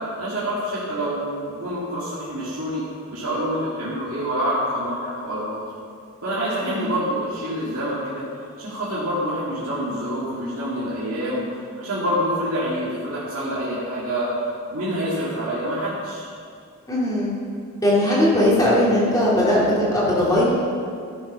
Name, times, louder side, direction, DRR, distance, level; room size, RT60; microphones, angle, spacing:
voice 1, 0.2-2.8 3.1-5.6 6.2-8.2 8.6-14.3 14.7-16.3, equal, 75° right, -9 dB, 2.3 m, -26 dB
voice 2, 6.6-6.9 16.9-17.3 17.8-20.5, left 1 dB, 15° left, -7 dB, 2.9 m, -19 dB
13.5 x 7.3 x 5.5 m, 2.3 s
head